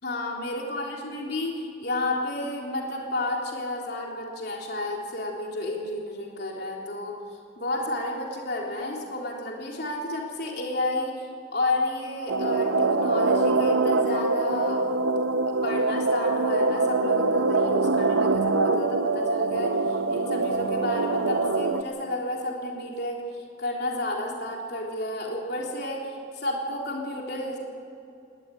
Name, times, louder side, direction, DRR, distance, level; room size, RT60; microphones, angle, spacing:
voice 1, 0.0-7.2 7.6-11.3 11.5-14.8 15.5-19.8 20.1-23.2 23.6-27.6, left 1 dB, 55° left, -1 dB, 3.6 m, -31 dB
sound 1, 12.3-21.8, right 3 dB, 80° right, 1.1 m, -24 dB
19.5 x 19.0 x 9.7 m, 2.6 s
head